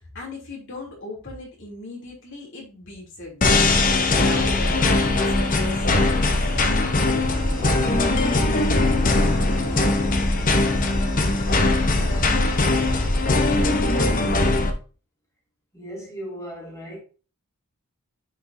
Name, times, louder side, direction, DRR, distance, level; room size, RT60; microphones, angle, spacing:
voice 1, 0.0-3.8 4.1-6.9 7.2-10.6, left 2 dB, 55° left, 3.0 m, -38 dB
sound 1, 3.4-14.7, left 2 dB, 35° left, 0.9 m, -20 dB
sound 2, 4.2-14.5, right 1 dB, 75° right, 3.1 m, -34 dB
voice 2, 15.7-17.0, equal, 15° left, 2.5 m, -37 dB
10.0 x 5.2 x 2.7 m
head